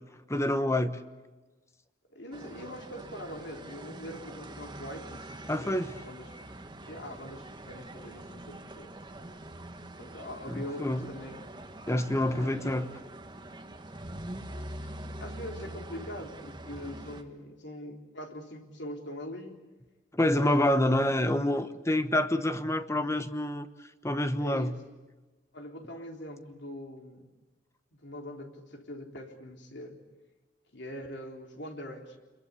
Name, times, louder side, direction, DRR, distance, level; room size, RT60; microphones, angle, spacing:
voice 1, 0.3-1.0 5.5-5.9 10.5-11.1 11.9-12.8 20.1-23.7 24.0-24.7, left 1 dB, 15° left, 1.1 m, -27 dB
voice 2, 2.1-6.3 6.8-9.5 10.0-11.5 12.3-12.8 14.5-14.9 15.2-19.6 20.3-21.0 24.4-24.8 25.5-27.3 27.9-30.0 30.7-32.2, left 1 dB, 65° left, 3.8 m, -43 dB
sound 1, 2.3-17.2, right 1 dB, 25° right, 1.6 m, -44 dB
27.5 x 22.5 x 8.4 m
head